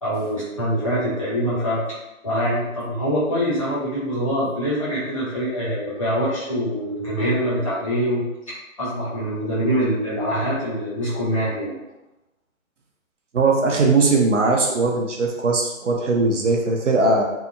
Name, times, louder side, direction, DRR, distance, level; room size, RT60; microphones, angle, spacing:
voice 1, 0.0-1.8 2.2-8.2 8.8-11.8, equal, 25° left, -11 dB, 0.8 m, -24 dB
voice 2, 13.3-17.2, right 3 dB, 60° right, 0 dB, 0.5 m, -19 dB
2.7 x 2.1 x 2.4 m, 0.96 s
figure-of-eight pair, 145°, 41 cm